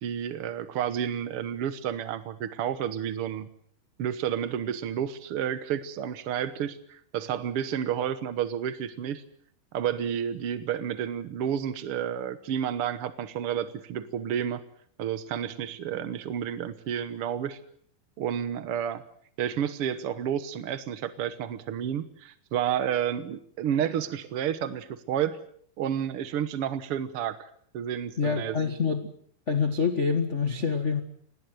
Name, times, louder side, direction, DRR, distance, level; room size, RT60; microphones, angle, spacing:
voice 1, 0.0-3.5 4.0-9.2 9.7-14.6 15.0-17.6 18.2-19.0 19.4-25.4 25.8-28.5, right 9 dB, 70° right, 12 dB, 1.3 m, -30 dB
voice 2, 28.2-29.1 29.5-31.0, left 5 dB, 75° left, 6 dB, 0.6 m, -26 dB
27.0 x 18.5 x 7.8 m, 0.62 s
omnidirectional pair, 4.3 m